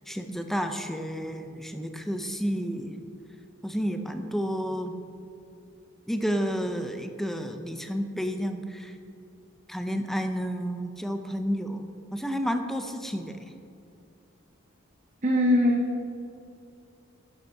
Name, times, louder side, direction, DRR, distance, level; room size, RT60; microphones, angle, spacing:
voice 1, 0.1-3.0 3.6-5.0 6.1-8.9 9.7-11.8 12.1-13.5, equal, ahead, 6 dB, 0.5 m, -31 dB
voice 2, 15.2-16.1, left 1 dB, 35° right, 1 dB, 0.7 m, -22 dB
11.5 x 11.5 x 2.7 m, 2.6 s
head